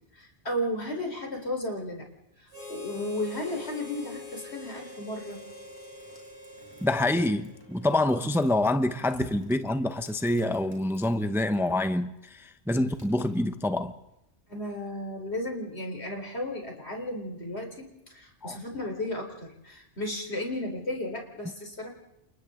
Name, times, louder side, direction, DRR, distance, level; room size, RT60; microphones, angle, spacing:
voice 1, 0.1-2.1 2.4-5.4 9.0-9.3 14.5-21.9, left 1 dB, 65° left, 4.4 m, -34 dB
Harmonica, 2.5-8.0, left 3 dB, 45° left, 4.4 m, -44 dB
sound 1, 5.3-11.8 12.1-14.0, equal, 20° left, 6.5 m, -55 dB
voice 2, 6.8-13.9 18.4-18.6, left 1 dB, ahead, 0.8 m, -26 dB
29.5 x 28.0 x 3.8 m
omnidirectional pair, 1.2 m